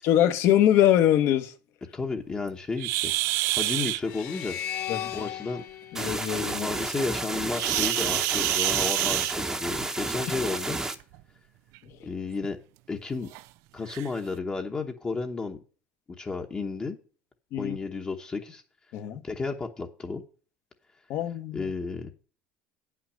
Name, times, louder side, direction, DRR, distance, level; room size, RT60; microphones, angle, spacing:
voice 1, 0.0-1.5 4.9-5.1 5.9-6.7 17.5-17.8 18.9-19.2 21.1-21.7, left 11 dB, 60° left, 1.2 m, -23 dB
voice 2, 1.9-4.6 5.1-5.6 6.5-10.8 12.0-12.6 12.9-13.3 13.7-15.6 16.2-17.0 17.6-18.6 19.2-20.2 21.5-22.1, left 4 dB, 20° left, 1.0 m, -32 dB
sound 1, 2.8-4.0 7.5-9.8 11.0-11.2 11.8-11.9 12.4-12.5 13.3-13.4 13.9-14.1, right 19 dB, 70° right, 0.4 m, -27 dB
sound 2, 4.0-7.3, left 10 dB, 85° left, 1.5 m, -37 dB
sound 3, 5.9-10.9, right 2 dB, 10° right, 0.9 m, -31 dB
9.5 x 5.8 x 6.3 m
cardioid pair, 155°, 5 cm